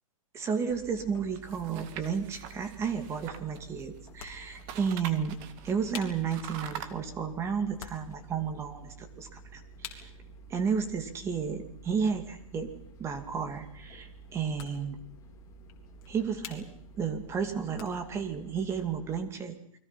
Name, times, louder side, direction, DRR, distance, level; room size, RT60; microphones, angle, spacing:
voice 1, 0.3-5.4 5.6-10.1 10.5-12.7 13.0-15.0 16.1-16.7 17.0-19.8, right 6 dB, 15° right, 7 dB, 2.3 m, -32 dB
sound 1, 0.7-19.2, right 3 dB, 15° left, 3.4 m, -51 dB
sound 2, 1.3-4.2 4.5-6.9, right 9 dB, 30° right, 2.0 m, -44 dB
sound 3, 1.9-18.3, left 10 dB, 45° left, 3.5 m, -53 dB
29.0 x 22.0 x 5.8 m, 0.65 s
hypercardioid pair, 155°, 18 cm